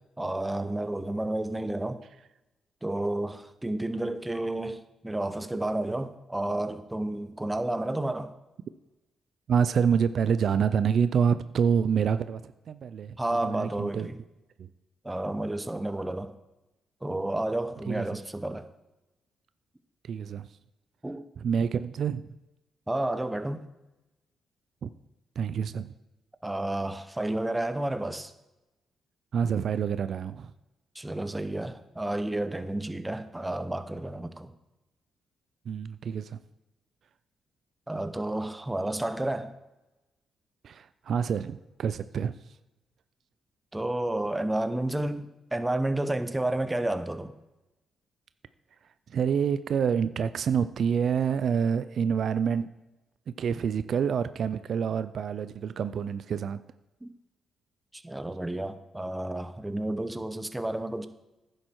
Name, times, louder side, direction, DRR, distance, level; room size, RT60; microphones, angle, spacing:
voice 1, 0.2-2.0 2.8-8.3 13.2-14.2 15.0-16.3 17.0-18.7 21.0-21.2 22.9-23.7 26.4-28.3 30.9-34.5 37.9-39.5 43.7-47.3 57.0-57.1 57.9-61.1, right 1 dB, 10° right, 0.8 m, -31 dB
voice 2, 9.5-12.4 12.7-13.2 13.4-14.1 14.6-14.7 17.9-18.2 20.0-20.5 21.4-22.3 24.8-24.9 25.4-25.9 29.3-30.5 35.7-36.4 40.6-42.3 49.1-52.7 53.3-56.6, right 7 dB, 65° right, 0.3 m, -27 dB
10.5 x 7.6 x 4.5 m
cardioid pair, 80°, 0 cm